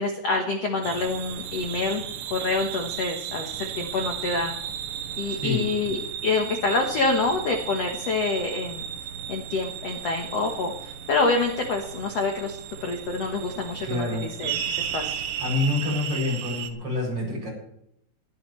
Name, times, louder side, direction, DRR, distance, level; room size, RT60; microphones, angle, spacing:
voice 1, 0.0-2.0 2.3-4.5 5.2-8.8 9.3-15.2, left 3 dB, 80° left, 3 dB, 1.4 m, -27 dB
sound 1, 0.8-16.7, right 8 dB, 85° right, 3.3 m, -35 dB
voice 2, 13.8-14.2 15.4-17.5, left 2 dB, 30° right, -3 dB, 7.7 m, -27 dB
21.5 x 13.0 x 3.2 m, 0.75 s
omnidirectional pair, 5.0 m